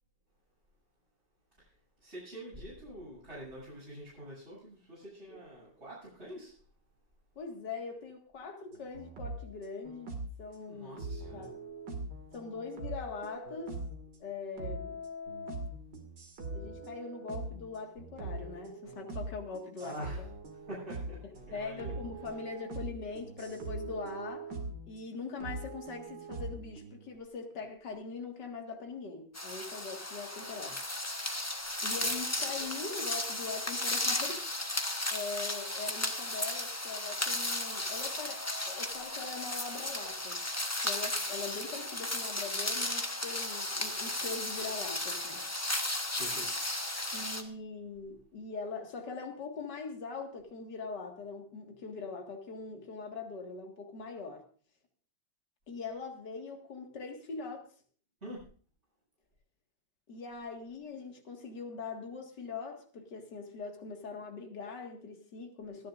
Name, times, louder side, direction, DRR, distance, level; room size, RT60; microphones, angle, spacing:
voice 1, 2.0-6.5 10.7-11.5 19.8-20.2 20.7-21.2 21.5-22.0 32.0-32.1 32.6-32.7 46.2-46.5 58.2-58.4, equal, 35° right, -9 dB, 8.5 m, -45 dB
voice 2, 7.4-10.1 10.4-11.5 12.3-13.8 14.2-15.0 16.5-20.1 21.5-24.5 24.8-30.8 31.8-34.4 35.1-40.4 40.8-45.4 47.1-54.4 55.7-57.7 60.1-65.9, left 4 dB, 65° left, 3 dB, 2.5 m, -42 dB
sound 1, 8.7-10.4 11.0-14.2 14.6-25.0 25.4-27.1, right 2 dB, 65° right, 2.9 m, -42 dB
sound 2, 29.3-47.4, left 1 dB, 10° left, 0.8 m, -35 dB
27.5 x 10.5 x 2.6 m, 0.43 s
omnidirectional pair, 2.0 m